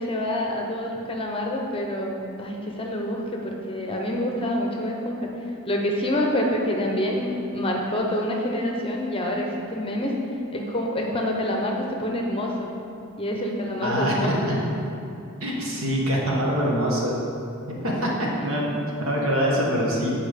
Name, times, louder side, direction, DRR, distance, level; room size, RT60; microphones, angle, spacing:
voice 1, 0.0-5.3 5.6-10.1 10.5-12.7 13.2-14.5 15.5-15.6, left 1 dB, 25° left, 0 dB, 0.7 m, -27 dB
voice 2, 13.8-14.3 15.4-17.1 17.7-20.1, equal, 70° right, -3 dB, 1.5 m, -24 dB
8.5 x 4.7 x 5.0 m, 2.7 s
head